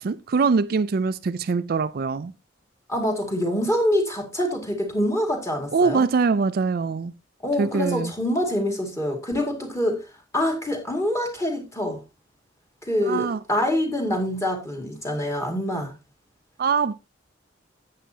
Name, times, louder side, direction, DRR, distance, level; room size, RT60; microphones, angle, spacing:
voice 1, 0.0-2.3 5.7-7.1 7.6-8.1 13.1-13.4 16.6-16.9, right 4 dB, 50° right, 0.4 m, -23 dB
voice 2, 2.9-6.0 7.4-10.0 10.3-12.0 12.8-15.9, left 1 dB, 15° left, 2.2 m, -25 dB
11.0 x 8.5 x 2.8 m
head